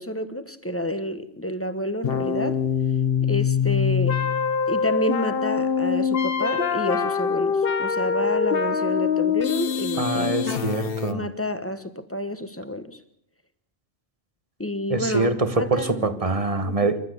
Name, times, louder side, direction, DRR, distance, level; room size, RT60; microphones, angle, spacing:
voice 1, 0.0-2.6 3.2-4.2 4.7-10.4 11.1-13.0 14.6-16.2 16.6-17.0, left 1 dB, 10° left, 11 dB, 1.3 m, -29 dB
sound 1, 2.0-11.1, left 6 dB, 60° left, 1.2 m, -24 dB
voice 2, 10.0-11.3 14.9-17.0, right 3 dB, 35° right, 12 dB, 1.3 m, -24 dB
29.0 x 12.5 x 8.1 m, 0.72 s
omnidirectional pair, 1.1 m